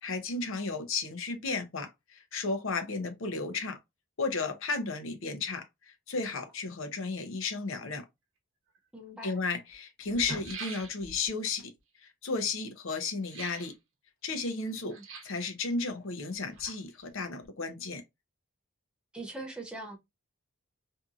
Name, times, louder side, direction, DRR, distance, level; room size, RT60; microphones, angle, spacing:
voice 1, 0.0-3.8 4.2-8.0 9.2-11.7 12.2-13.7 14.2-15.0 15.2-18.0, left 3 dB, 65° left, 0.6 m, -33 dB
sound 1, 8.8-8.9 9.7-9.8 10.0-11.3 13.2-13.7 14.9-15.5 16.3-17.1 17.4-17.5, right 3 dB, 65° right, 0.8 m, -43 dB
voice 2, 8.9-9.4 14.9-15.0 19.1-20.0, right 2 dB, 5° right, 0.5 m, -41 dB
2.7 x 2.5 x 2.3 m
head